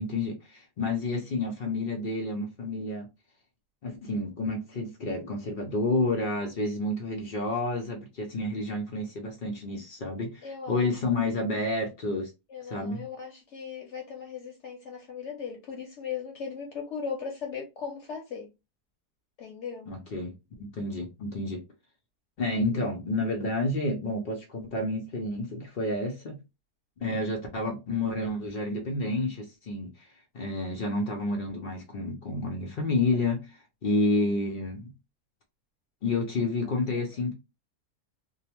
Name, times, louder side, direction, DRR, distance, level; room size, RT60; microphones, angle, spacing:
voice 1, 0.0-3.1 3.8-12.3 12.6-13.1 19.9-21.6 22.4-26.4 27.0-30.1 30.3-34.9 36.0-37.3, left 2 dB, 90° left, 0.4 m, -30 dB
voice 2, 10.4-10.9 12.5-18.5 19.4-19.9, left 6 dB, 65° left, 0.7 m, -38 dB
2.7 x 2.0 x 2.8 m
omnidirectional pair, 1.7 m